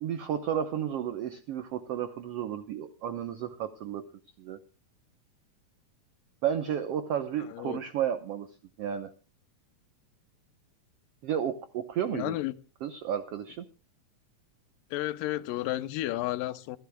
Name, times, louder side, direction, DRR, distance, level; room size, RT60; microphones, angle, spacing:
voice 1, 0.0-4.0 4.4-4.6 6.4-8.5 8.8-9.1 11.2-12.3 12.8-13.6, right 9 dB, 90° right, 1.3 m, -32 dB
voice 2, 7.4-7.8 12.1-12.6 14.9-16.8, left 16 dB, 80° left, 2.3 m, -32 dB
27.0 x 12.0 x 2.2 m
omnidirectional pair, 4.0 m